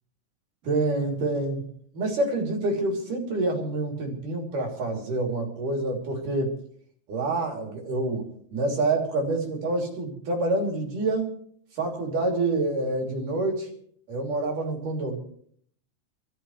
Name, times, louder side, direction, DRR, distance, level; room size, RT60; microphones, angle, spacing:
voice 1, 0.6-1.6 1.9-6.6 7.1-8.2 8.5-11.3 11.7-13.7 14.1-15.2, right 2 dB, 70° right, 1 dB, 4.7 m, -27 dB
27.5 x 14.0 x 3.2 m, 0.63 s
omnidirectional pair, 3.8 m